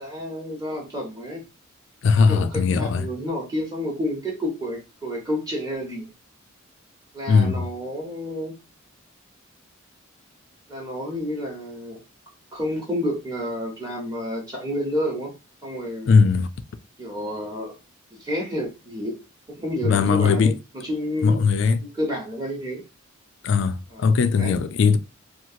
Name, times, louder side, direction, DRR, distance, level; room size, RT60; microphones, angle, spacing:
voice 1, 0.0-1.4 2.3-6.1 7.1-8.5 10.7-12.0 12.5-15.3 15.6-16.1 17.0-17.7 18.2-19.2 19.5-21.4 21.8-22.8 23.9-24.1 24.4-24.6, equal, 20° right, 0.8 m, -30 dB
voice 2, 2.0-3.1 7.3-7.7 16.1-16.5 19.8-20.6 21.2-21.8 23.4-25.0, left 5 dB, 60° left, 0.3 m, -19 dB
2.9 x 2.4 x 2.7 m
head